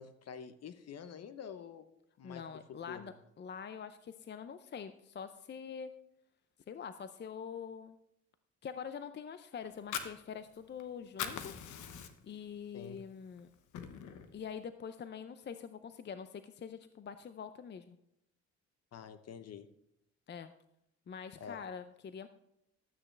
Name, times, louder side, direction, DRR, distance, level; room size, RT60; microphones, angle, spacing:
voice 1, 0.0-1.8 2.2-2.4 2.9-3.0 12.7-13.0 18.9-19.7 21.4-21.6, left 7 dB, 55° left, 11 dB, 0.9 m, -47 dB
voice 2, 2.2-5.9 6.7-8.0 8.6-11.5 12.2-13.5 14.3-18.0 20.3-20.5 21.1-22.3, left 7 dB, 35° left, 11 dB, 0.5 m, -45 dB
Fire, 9.6-10.8 11.1-12.4 12.8-13.0 13.4-14.3, left 8 dB, 80° left, 1.1 m, -41 dB
12.5 x 8.7 x 3.3 m, 0.78 s
cardioid pair, 90°, 30 cm